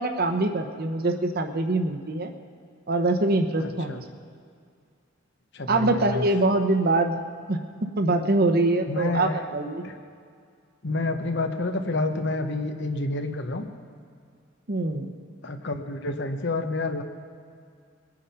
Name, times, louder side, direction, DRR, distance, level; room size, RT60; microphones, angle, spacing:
voice 1, 0.0-2.3 2.9-4.0 5.7-7.2 7.5-7.6 8.0-9.8 14.7-15.2, right 2 dB, 50° right, 7 dB, 0.9 m, -24 dB
voice 2, 3.6-4.0 5.5-6.3 8.9-9.4 9.8-9.9 10.8-13.7 15.4-17.0, left 2 dB, 60° left, 7 dB, 1.0 m, -29 dB
21.5 x 8.8 x 5.7 m, 2.2 s
head